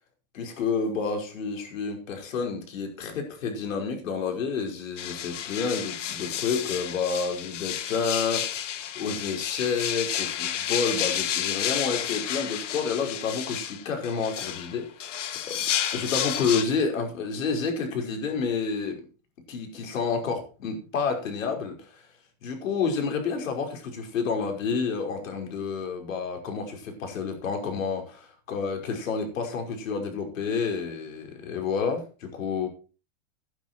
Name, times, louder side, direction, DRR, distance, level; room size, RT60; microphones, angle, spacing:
voice 1, 0.3-8.7 9.0-15.6 15.9-19.0 19.5-22.0 22.4-32.7, left 5 dB, 85° left, 5.3 m, -29 dB
sound 1, 5.0-16.6, left 10 dB, 70° left, 1.7 m, -31 dB
12.5 x 10.0 x 4.4 m
supercardioid pair, 180°, 38 cm